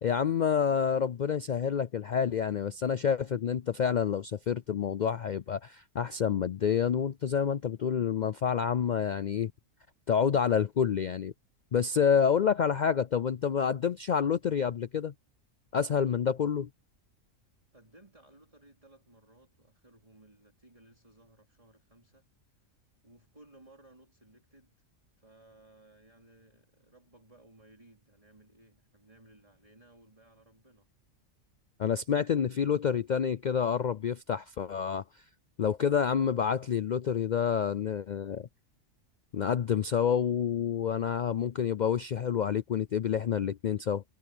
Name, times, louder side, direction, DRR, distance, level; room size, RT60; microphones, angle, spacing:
voice 1, 0.0-9.5 10.1-11.3 11.7-15.1 15.7-16.7 31.8-35.0 35.6-38.5 39.3-44.0, left 7 dB, 65° left, 0.4 m, -28 dB
voice 2, 17.7-22.7 23.0-24.7 25.1-30.9, right 2 dB, 25° right, 4.2 m, -59 dB
omnidirectional pair, 1.3 m